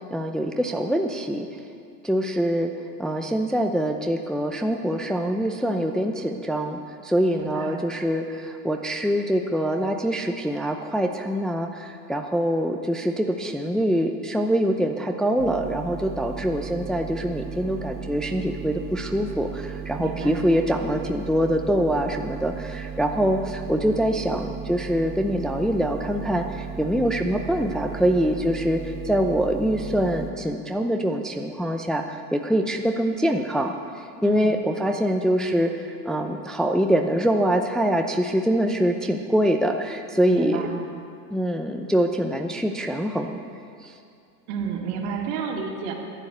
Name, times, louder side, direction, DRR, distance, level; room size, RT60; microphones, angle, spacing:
voice 1, 0.1-1.5 2.0-2.7 3.0-33.7 34.2-35.7 36.0-40.7 41.3-43.4 43.8-43.9, equal, ahead, 4 dB, 0.6 m, -24 dB
voice 2, 7.4-7.9 20.0-20.5 34.2-34.6 40.3-40.8 44.5-45.9, right 6 dB, 65° right, 1 dB, 2.3 m, -31 dB
sound 1, 15.4-30.3, right 8 dB, 50° right, 1.5 m, -36 dB
11.0 x 9.9 x 8.0 m, 2.4 s
hypercardioid pair, 95°, 48 cm